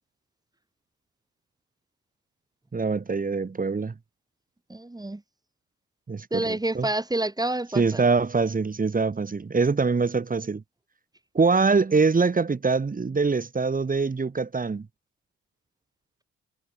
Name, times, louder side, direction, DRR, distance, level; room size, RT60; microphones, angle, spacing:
voice 1, 2.7-3.9 6.1-6.9 7.7-10.6 11.3-14.9, right 4 dB, 30° right, 2.5 m, -24 dB
voice 2, 4.7-5.2 6.3-8.0, right 2 dB, 15° right, 5.7 m, -28 dB
cardioid pair, 90°, 30 cm